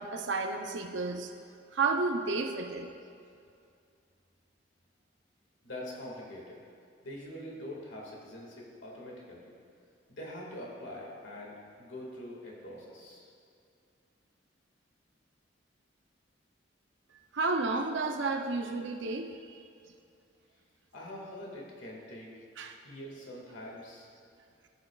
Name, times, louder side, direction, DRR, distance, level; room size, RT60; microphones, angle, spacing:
voice 1, 0.0-1.3 1.7-2.9 17.3-19.6 22.6-22.8, right 3 dB, 75° right, 5 dB, 0.6 m, -31 dB
voice 2, 5.6-6.6 7.0-9.5 10.1-13.3 20.9-22.3 22.8-24.1, left 1 dB, 85° left, -3 dB, 1.9 m, -44 dB
14.5 x 7.8 x 2.3 m, 2.4 s
head